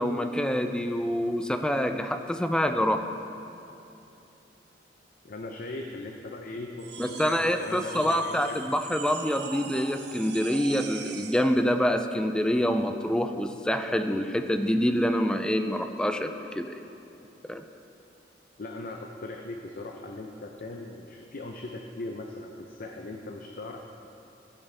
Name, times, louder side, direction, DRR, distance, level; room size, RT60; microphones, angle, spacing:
voice 1, 0.0-3.0 7.0-16.8 17.5-17.6, equal, 5° left, 7 dB, 0.4 m, -26 dB
voice 2, 5.2-6.9 7.2-8.6 18.6-23.8, left 2 dB, 55° left, 2 dB, 0.6 m, -39 dB
sound 1, 6.8-11.5, right 6 dB, 70° right, 0.7 m, -41 dB
15.0 x 8.9 x 3.4 m, 2.9 s
head